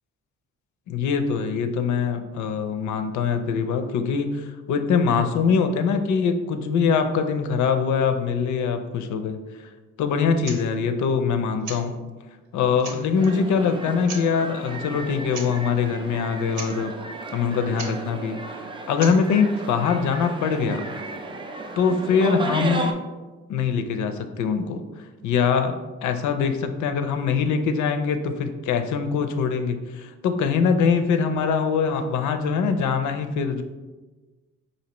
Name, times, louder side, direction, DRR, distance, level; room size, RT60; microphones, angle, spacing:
voice 1, 0.9-9.7 10.0-11.9 12.5-16.9 17.3-20.8 21.8-23.0 23.5-24.8 25.2-25.8 26.0-33.6, left 6 dB, 75° left, 7 dB, 0.5 m, -23 dB
sound 1, 10.4-10.6 11.6-11.9 12.5-12.6 12.8-13.3 14.0-14.3 15.3-15.5 15.8-15.9 16.2-16.3 16.5-16.8 17.8-18.0 19.0-19.2, right 4 dB, 70° right, 0.8 m, -36 dB
sound 2, 13.2-22.9, right 2 dB, 15° right, 0.3 m, -34 dB
4.3 x 2.7 x 2.9 m, 1.2 s
cardioid pair, 90°, 30 cm